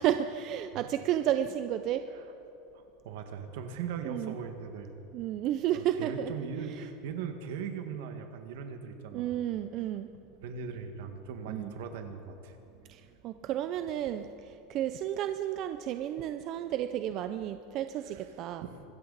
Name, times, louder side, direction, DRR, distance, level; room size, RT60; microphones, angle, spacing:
voice 1, 0.0-2.1 4.0-4.4 5.1-6.3 6.7-6.8 9.1-10.1 11.5-11.7 12.9-18.6, right 11 dB, 35° right, 9 dB, 0.4 m, -32 dB
voice 2, 2.7-4.9 5.7-9.4 10.4-12.5 18.1-18.2 18.6-18.8, right 6 dB, 65° right, 6 dB, 1.7 m, -39 dB
24.5 x 14.0 x 4.1 m, 2.9 s
supercardioid pair, 175°, 0 cm